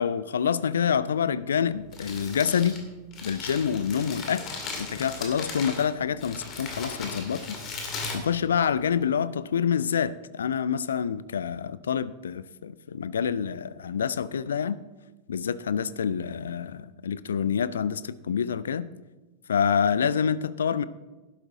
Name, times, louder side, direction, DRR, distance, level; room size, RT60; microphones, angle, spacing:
voice 1, 0.0-2.8 3.2-4.5 4.8-7.6 8.1-14.8 15.3-18.9 19.5-20.8, left 7 dB, 65° left, 0.4 m, -27 dB
Crumpling crinkling, 1.7-9.0, left 3 dB, 35° left, 2.5 m, -38 dB
11.5 x 11.5 x 3.7 m
figure-of-eight pair, 90°, 0 cm